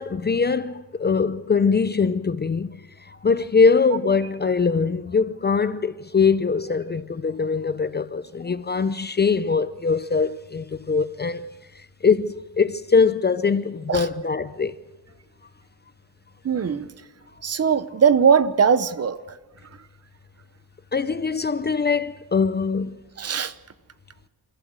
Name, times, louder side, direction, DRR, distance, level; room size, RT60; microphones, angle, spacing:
voice 1, 0.0-11.4 12.0-14.7 20.9-23.0, left 5 dB, 25° left, 0.6 m, -22 dB
voice 2, 16.4-16.9 17.4-19.4 23.2-23.5, right 6 dB, 35° right, 1.0 m, -20 dB
29.0 x 15.0 x 6.4 m
cardioid pair, 135°, 41 cm